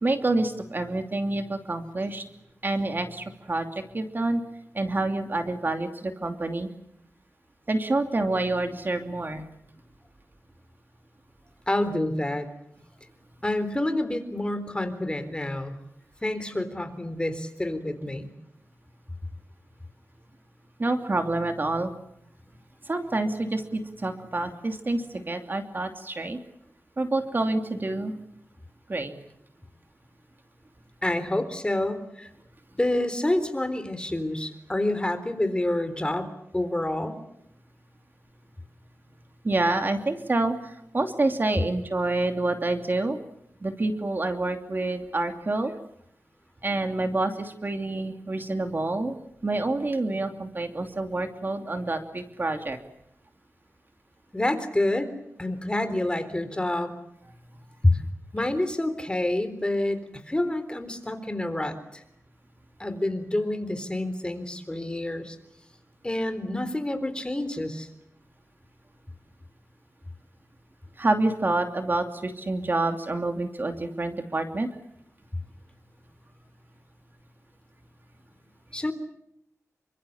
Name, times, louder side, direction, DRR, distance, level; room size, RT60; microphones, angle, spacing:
voice 1, 0.0-2.2 2.6-4.4 4.7-6.7 7.7-9.5 20.8-21.9 22.9-26.4 27.0-28.1 28.9-29.1 39.4-43.2 43.6-45.7 46.6-49.2 49.4-52.8 71.0-74.7, right 2 dB, 35° right, 6 dB, 2.8 m, -27 dB
voice 2, 11.7-12.5 13.4-15.8 16.2-18.3 31.0-32.3 32.8-36.3 36.5-37.1 54.3-55.1 55.4-56.9 57.9-58.0 58.3-62.0 62.8-65.4 66.0-67.9 78.7-78.9, left 1 dB, 15° left, 10 dB, 3.9 m, -28 dB
29.0 x 25.5 x 7.3 m, 0.76 s
wide cardioid pair, 120°, 6 cm